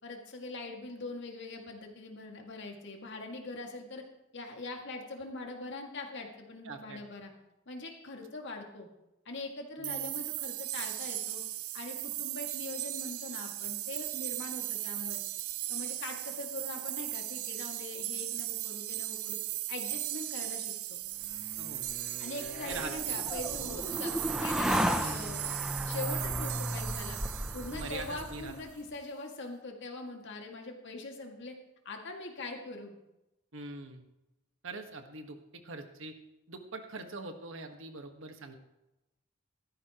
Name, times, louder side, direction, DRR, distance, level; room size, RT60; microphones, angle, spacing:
voice 1, 0.0-4.0 4.3-7.3 7.7-8.9 9.3-11.4 11.7-15.2 15.7-19.4 19.7-21.0 22.2-25.6 25.9-27.2 27.5-31.5 31.8-33.0, left 2 dB, 55° left, 2 dB, 2.2 m, -42 dB
voice 2, 6.6-7.0 9.8-10.1 21.6-21.9 22.6-23.2 27.7-28.5 33.5-34.0 34.6-36.2 36.5-38.5, right 3 dB, 60° right, 5 dB, 1.5 m, -43 dB
sound 1, 9.8-28.5, right 14 dB, 80° right, 0.7 m, -37 dB
sound 2, 21.3-28.7, equal, 5° right, 0.6 m, -35 dB
16.0 x 13.5 x 3.0 m, 0.95 s
head